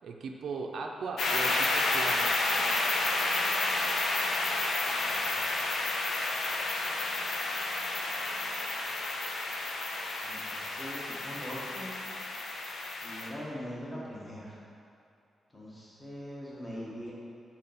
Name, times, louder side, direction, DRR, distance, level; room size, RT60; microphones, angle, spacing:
voice 1, 0.0-2.3, right 4 dB, 75° right, 1 dB, 0.6 m, -38 dB
sound 1, 1.2-13.3, left 2 dB, 80° left, 0.8 m, -31 dB
voice 2, 5.1-5.4 8.1-8.3 10.2-11.9 12.9-14.5 15.5-17.1, equal, 15° left, -6 dB, 1.7 m, -42 dB
8.8 x 3.8 x 5.9 m, 2.6 s
wide cardioid pair, 125°, 0 cm